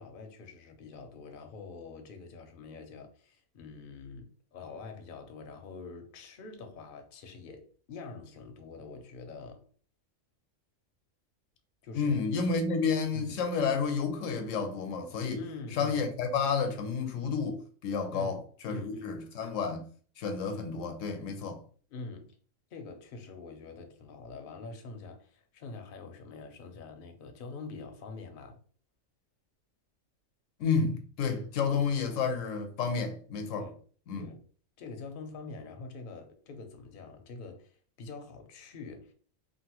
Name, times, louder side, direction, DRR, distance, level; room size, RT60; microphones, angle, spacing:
voice 1, 0.0-9.7 11.8-12.2 13.1-13.4 15.3-16.0 18.1-19.2 21.9-22.4 22.7-28.6 33.5-33.8 34.2-34.4 34.8-39.1, left 3 dB, 55° left, 0.7 m, -45 dB
voice 2, 11.9-15.4 15.8-19.9 20.2-21.6 30.6-33.6 34.1-34.3, left 5 dB, 80° left, 1.0 m, -30 dB
3.0 x 2.5 x 2.9 m
omnidirectional pair, 1.3 m